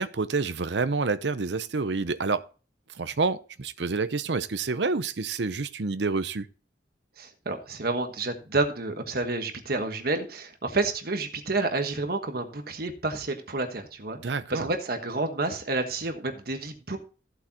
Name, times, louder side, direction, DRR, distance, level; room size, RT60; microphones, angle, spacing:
voice 1, 0.0-2.4 3.0-6.5 14.2-14.7, right 4 dB, 70° right, 0.7 m, -28 dB
voice 2, 7.2-17.0, right 3 dB, 55° right, 1.4 m, -30 dB
15.0 x 8.0 x 2.9 m
head